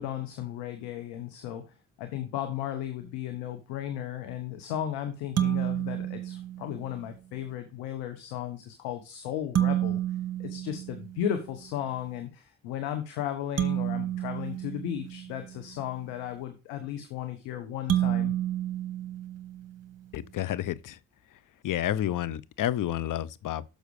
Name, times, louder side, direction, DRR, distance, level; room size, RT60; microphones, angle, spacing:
voice 1, 0.0-1.6 2.0-10.0 10.4-18.3, left 10 dB, 80° left, 1.0 m, -35 dB
sound 1, 5.4-7.0 9.5-11.6 13.6-15.7 17.9-19.9, right 12 dB, 40° right, 1.0 m, -30 dB
voice 2, 20.1-21.0 21.6-23.7, left 12 dB, 55° left, 0.7 m, -30 dB
6.6 x 6.3 x 4.8 m
hypercardioid pair, 40°, 39 cm